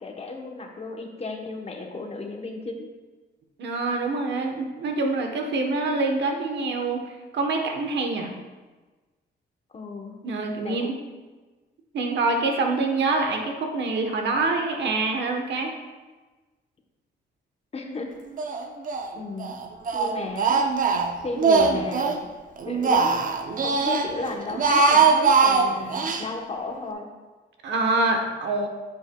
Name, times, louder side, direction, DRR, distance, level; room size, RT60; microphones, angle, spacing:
voice 1, 0.0-2.9 9.7-10.2 10.6-11.1 17.7-18.1 19.2-19.6 19.9-20.6 21.2-22.3 22.7-23.2 23.6-27.1, left 3 dB, 35° left, 2 dB, 1.0 m, -34 dB
voice 2, 3.6-8.3 10.2-11.0 11.9-15.7 27.6-28.7, right 3 dB, 75° right, 3 dB, 1.1 m, -25 dB
Speech, 18.4-19.1 19.4-22.2 22.6-24.1 24.5-26.2, right 4 dB, 50° right, 0.6 m, -21 dB
9.3 x 7.2 x 2.3 m, 1.3 s
cardioid pair, 120°, 18 cm